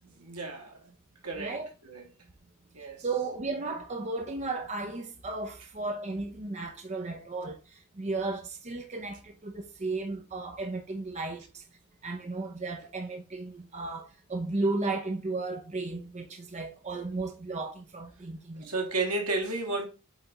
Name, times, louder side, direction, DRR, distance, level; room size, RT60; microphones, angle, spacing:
voice 1, 0.0-0.8 1.2-1.6 1.8-2.1 2.7-3.0 18.6-19.9, right 2 dB, 85° right, 1.8 m, -32 dB
voice 2, 1.4-1.7 3.0-11.6 12.0-18.7, right 3 dB, 30° right, 0.7 m, -34 dB
8.1 x 3.5 x 3.9 m
head